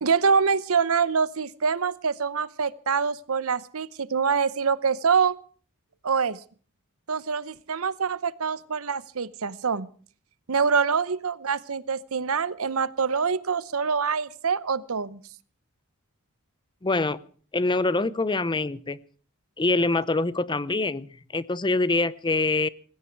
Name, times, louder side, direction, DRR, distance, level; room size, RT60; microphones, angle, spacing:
voice 1, 0.0-5.4 6.0-6.4 7.1-9.9 10.5-15.2, right 5 dB, 70° right, 18 dB, 0.8 m, -25 dB
voice 2, 16.8-17.2 17.5-19.0 19.6-22.7, left 2 dB, 20° left, 18 dB, 0.7 m, -25 dB
19.0 x 16.0 x 4.6 m, 0.43 s
head